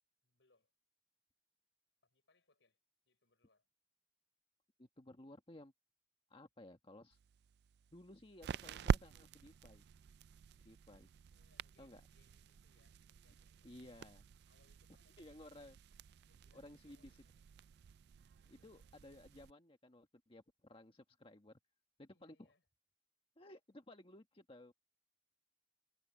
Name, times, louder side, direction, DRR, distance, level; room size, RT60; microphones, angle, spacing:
voice 1, 0.2-0.7 2.0-2.8 3.0-3.7 11.3-13.9 14.5-15.5 16.2-17.4 18.4-19.0 22.1-22.6, left 3 dB, 80° left, 4.9 m, -77 dB
voice 2, 4.8-5.7 6.3-7.2 7.9-9.8 10.6-11.1 11.8-12.0 13.6-14.3 15.2-15.8 16.5-17.2 18.5-21.6 22.0-22.5 23.4-24.7, left 1 dB, 30° left, 1.5 m, -57 dB
sound 1, 7.1-19.5, right 6 dB, 65° right, 0.3 m, -45 dB
head